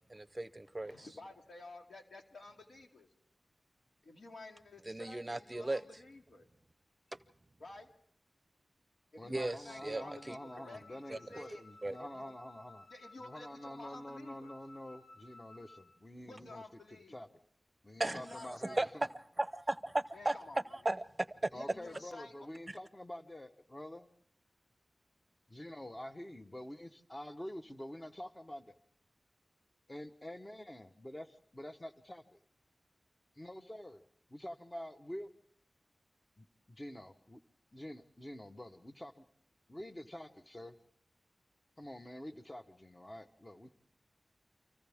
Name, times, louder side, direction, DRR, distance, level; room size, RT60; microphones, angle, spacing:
voice 1, 0.1-1.1 4.9-5.8 9.3-10.4 11.1-11.2 11.8-12.0 18.0-18.2 18.6-18.9 19.4-20.3 20.8-21.0 21.4-21.5, right 2 dB, 25° right, 0.8 m, -36 dB
voice 2, 0.8-3.1 4.0-6.5 7.6-7.9 9.1-11.6 12.0-12.3 12.9-14.5 16.2-17.2 18.1-18.9 20.1-20.8 21.5-22.5, left 2 dB, 85° left, 2.6 m, -52 dB
voice 3, 9.2-12.9 13.2-17.3 17.8-19.1 21.5-24.1 25.5-28.7 29.9-32.4 33.4-34.0 34.3-35.3 36.4-37.4 37.7-39.2 39.7-40.8 41.8-43.7, left 1 dB, 20° left, 1.1 m, -47 dB
Wind instrument woodwind instrument, 9.7-15.9, left 2 dB, 55° left, 7.2 m, -58 dB
29.5 x 25.0 x 3.6 m
wide cardioid pair, 80°, 0 cm